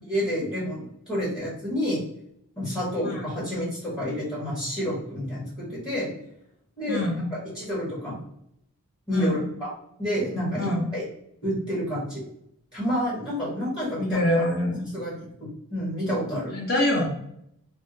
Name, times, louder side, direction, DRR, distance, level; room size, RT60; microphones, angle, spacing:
voice 1, 0.0-2.0 2.6-6.1 6.8-7.0 7.3-8.2 9.1-9.7 10.0-11.0 11.4-12.2 12.7-14.4 14.9-15.2 15.7-16.5, equal, 20° left, -7 dB, 1.2 m, -29 dB
voice 2, 6.9-7.3 9.1-9.4 10.6-10.9 14.1-14.9 16.5-17.1, left 1 dB, 45° left, -2 dB, 1.1 m, -25 dB
3.5 x 2.3 x 2.6 m, 0.75 s
head